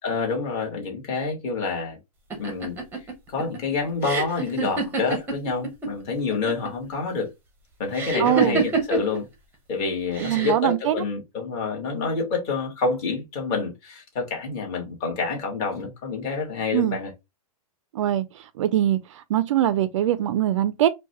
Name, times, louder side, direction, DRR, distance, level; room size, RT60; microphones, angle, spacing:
voice 1, 0.0-2.0 2.4-2.8 3.3-7.3 7.8-9.2 9.7-17.1, left 4 dB, 30° left, 1.7 m, -28 dB
sound 1, 2.3-5.9 6.2-6.8 7.9-9.2 10.1-10.7, right 4 dB, 10° right, 0.8 m, -27 dB
voice 2, 8.2-8.6 10.2-10.9 16.7-17.0 17.9-18.2 18.6-19.0 19.3-20.9, right 12 dB, 50° right, 0.4 m, -22 dB
4.8 x 2.3 x 2.9 m
hypercardioid pair, 160°, 20 cm